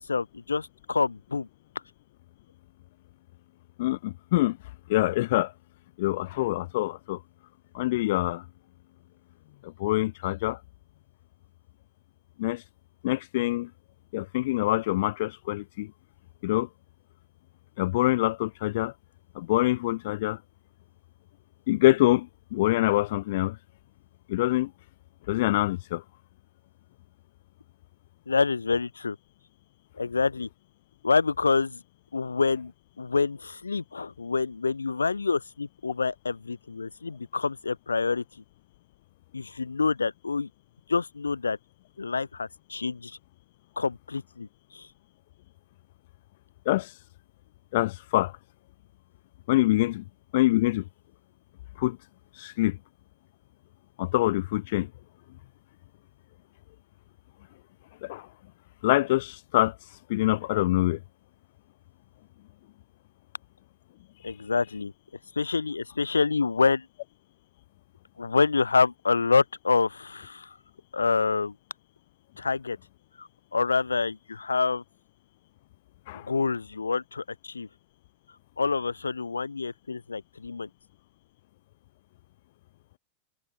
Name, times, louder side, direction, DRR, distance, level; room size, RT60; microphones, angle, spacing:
voice 1, 0.1-1.5 28.3-29.2 30.0-30.5 31.0-31.8 32.1-32.7 33.0-38.2 39.3-40.5 40.9-41.6 42.0-43.2 43.8-44.5 44.7-44.9 64.2-64.9 65.4-66.9 68.2-70.5 70.9-71.5 72.4-72.8 73.2-74.8 76.1-77.7 78.6-80.7, left 4 dB, 75° left, 2.1 m, -27 dB
voice 2, 3.8-4.6 4.9-5.5 6.0-7.2 7.7-8.4 9.6-10.6 12.4-12.6 13.0-13.7 14.1-15.9 16.4-16.7 17.8-18.9 19.3-20.4 21.7-23.6 24.3-24.7 25.3-26.0 46.7-47.0 47.7-48.3 49.5-50.0 50.3-50.8 51.8-52.0 52.3-52.8 54.0-54.9 58.0-58.3 58.8-61.0 76.1-76.3, left 17 dB, 55° left, 0.9 m, -25 dB
figure-of-eight pair, 90°, 0 cm